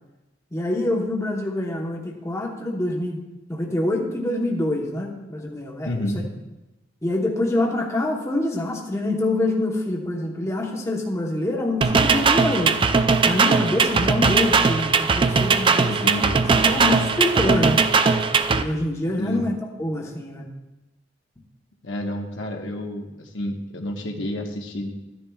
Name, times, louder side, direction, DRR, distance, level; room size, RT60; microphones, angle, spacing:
voice 1, 0.5-3.2 3.5-6.0 7.0-12.8 13.2-16.1 16.6-17.8 18.5-20.5, left 1 dB, 15° left, -1 dB, 1.0 m, -25 dB
voice 2, 5.8-6.2 15.9-16.4 19.2-19.4 21.8-24.9, left 1 dB, 75° left, 2 dB, 1.1 m, -29 dB
sound 1, 11.8-18.6, right 4 dB, 25° right, 0.4 m, -19 dB
13.0 x 10.0 x 2.3 m, 1.0 s
head